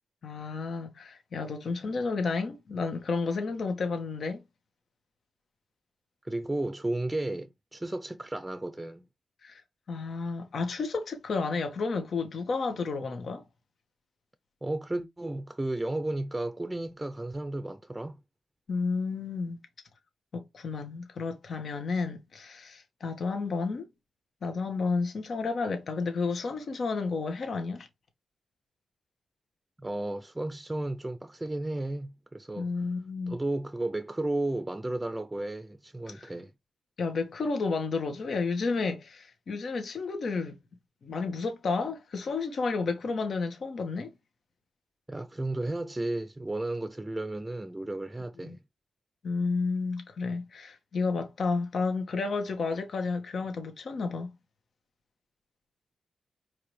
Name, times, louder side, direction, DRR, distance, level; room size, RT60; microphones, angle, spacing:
voice 1, 0.2-4.4 9.4-9.6 9.9-13.4 18.7-19.6 20.3-23.9 24.4-27.9 32.6-33.4 36.1-36.3 37.0-40.6 41.0-44.1 48.4-48.6 49.2-54.3, left 4 dB, 70° left, 1.3 m, -31 dB
voice 2, 6.2-9.0 14.6-18.2 29.8-32.7 33.3-36.5 45.1-48.6, right 2 dB, 20° right, 0.6 m, -33 dB
4.7 x 3.3 x 3.3 m
cardioid pair, 50°, 0 cm